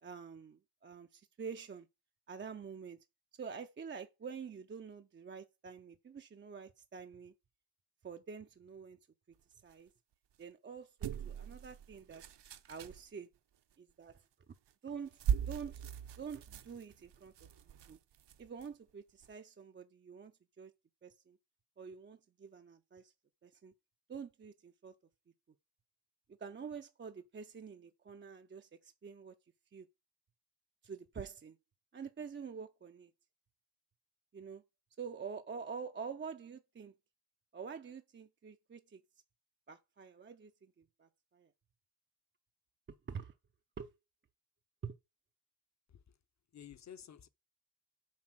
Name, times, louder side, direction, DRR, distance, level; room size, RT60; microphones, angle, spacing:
voice 1, 0.0-1.9 2.3-3.0 3.4-7.3 8.0-9.0 9.6-9.9 10.4-12.2 12.7-13.3 13.8-14.5 14.8-15.8 16.2-17.3 17.9-18.0 18.4-20.3 20.6-20.7 21.0-21.4 21.8-23.1 23.4-23.7 24.1-24.9 26.4-29.3 29.7-29.9 30.8-31.6 31.9-33.1 34.3-34.6 35.0-36.9 37.5-39.0 39.7-41.5 43.1-43.3 43.8-43.9 44.8-45.0, right 6 dB, 30° right, 0.4 m, -47 dB
sound 1, 11.0-13.1 14.5-14.7 15.1-18.7 19.2-19.3, right 8 dB, 70° right, 0.8 m, -39 dB
voice 2, 46.5-47.3, left 9 dB, 40° left, 0.6 m, -52 dB
7.4 x 4.2 x 5.9 m
wide cardioid pair, 175°, 43 cm